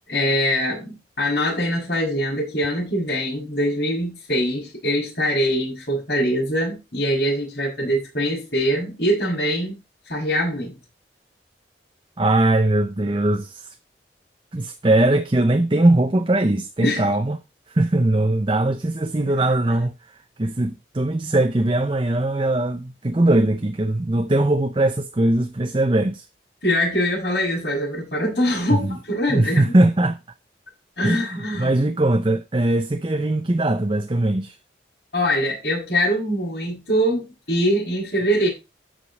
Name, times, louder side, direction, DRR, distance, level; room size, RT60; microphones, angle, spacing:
voice 1, 0.1-9.7 10.1-10.8 16.8-17.0 26.6-29.7 31.0-31.7 35.1-38.5, equal, 65° left, 6.4 m, -23 dB
voice 2, 12.2-13.7 14.5-17.4 17.7-26.3 28.7-29.0 29.3-30.2 31.0-34.6, right 1 dB, 30° right, 0.6 m, -20 dB
13.5 x 5.3 x 4.1 m
head